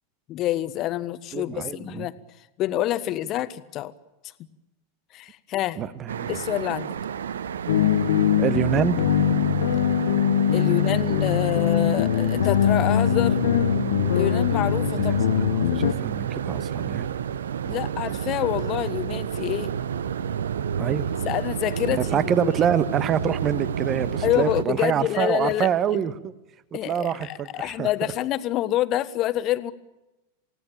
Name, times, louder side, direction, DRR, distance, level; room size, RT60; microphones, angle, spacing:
voice 1, 0.3-2.1 2.6-3.9 5.1-5.8 6.3-6.9 10.5-13.4 14.1-15.2 17.7-19.7 21.2-22.5 24.2-26.0 26.7-29.7, left 13 dB, 35° left, 14 dB, 1.4 m, -27 dB
voice 2, 1.3-2.1 5.8-6.4 8.4-9.1 15.0-17.1 20.8-21.1 22.0-26.3 26.8-28.1, right 9 dB, 30° right, 16 dB, 1.5 m, -26 dB
sound 1, 6.1-24.6, right 8 dB, 65° right, 0.9 m, -30 dB
sound 2, 7.7-15.9, left 9 dB, 60° left, 1.3 m, -22 dB
29.0 x 18.5 x 8.9 m, 1.0 s
figure-of-eight pair, 90°, 0 cm